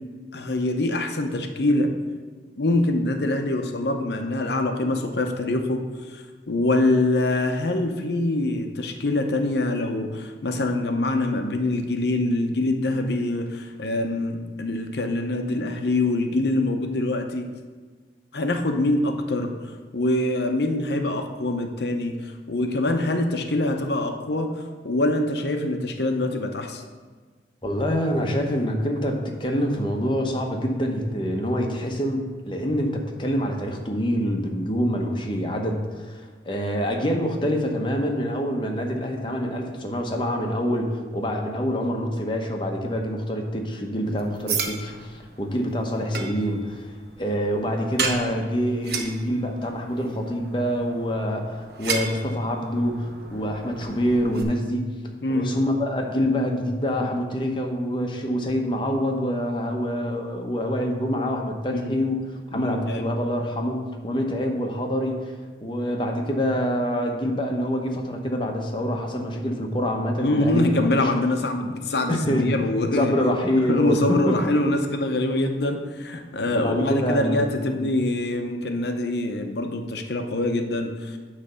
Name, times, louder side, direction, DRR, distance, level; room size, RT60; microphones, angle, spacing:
voice 1, 0.3-1.9 2.6-5.8 6.1-17.5 18.3-19.6 19.9-26.8 55.2-55.6 61.6-61.9 62.5-63.0 70.2-73.2 73.7-81.2, left 2 dB, 65° left, 5 dB, 0.7 m, -24 dB
voice 2, 27.6-46.9 47.2-54.8 55.3-62.2 62.5-65.3 65.6-70.6 72.1-72.5 73.0-74.6 76.5-77.9, equal, 25° left, 2 dB, 0.9 m, -26 dB
sound 1, 44.0-54.4, right 5 dB, 60° right, 0.8 m, -34 dB
9.8 x 3.3 x 6.8 m, 1.4 s
head